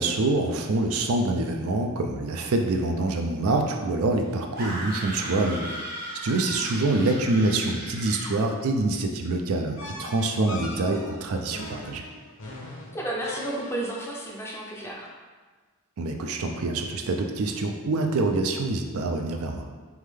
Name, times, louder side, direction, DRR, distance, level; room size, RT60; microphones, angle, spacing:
voice 1, 0.0-5.7 6.2-12.0 16.0-19.7, right 2 dB, 75° right, 3 dB, 0.4 m, -26 dB
sound 1, 4.6-8.4, right 1 dB, 45° right, 0.8 m, -36 dB
sound 2, 9.8-14.1, left 2 dB, 65° left, 0.8 m, -40 dB
voice 2, 12.9-15.1, right 1 dB, 10° left, -3 dB, 0.5 m, -32 dB
3.5 x 3.2 x 3.4 m, 1.4 s
head